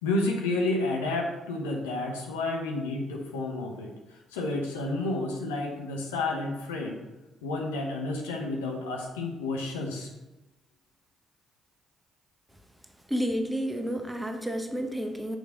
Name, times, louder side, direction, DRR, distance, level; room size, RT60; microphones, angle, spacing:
voice 1, 0.0-3.9 4.3-7.0 7.4-10.1, left 2 dB, 80° left, 0 dB, 0.9 m, -30 dB
voice 2, 13.1-15.4, equal, 5° right, 5 dB, 0.9 m, -30 dB
6.4 x 5.1 x 3.8 m, 1.0 s
figure-of-eight pair, 45°, 0 cm